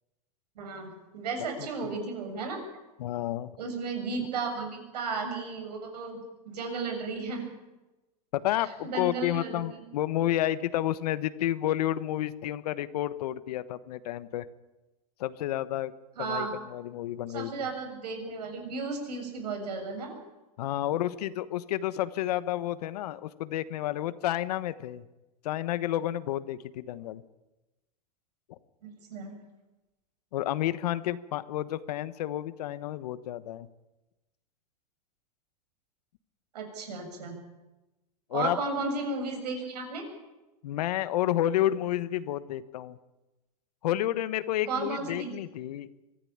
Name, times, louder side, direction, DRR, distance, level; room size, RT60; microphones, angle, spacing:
voice 1, 0.6-2.6 3.6-6.2 6.4-7.4 8.8-9.8 16.2-16.5 17.3-20.2 29.1-29.3 36.5-37.4 38.3-40.0 44.7-45.3, right 4 dB, 90° right, 5 dB, 7.2 m, -34 dB
voice 2, 3.0-3.5 8.3-14.5 15.2-15.9 16.2-17.7 20.6-25.0 25.4-27.2 30.3-33.7 38.3-38.6 40.6-43.0 43.8-45.9, left 13 dB, 75° left, 14 dB, 1.3 m, -30 dB
23.5 x 15.0 x 8.8 m, 1.0 s
supercardioid pair, 135°, 20 cm